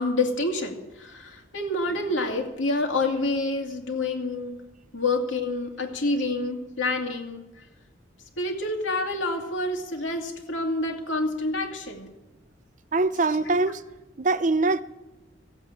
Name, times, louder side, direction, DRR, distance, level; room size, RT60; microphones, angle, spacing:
voice 1, 0.0-4.6 4.9-7.4 8.4-12.1 13.4-13.6, left 2 dB, 85° left, 2.4 m, -28 dB
voice 2, 12.9-13.8 14.2-14.8, right 3 dB, 40° right, 0.6 m, -23 dB
16.0 x 8.2 x 8.8 m
head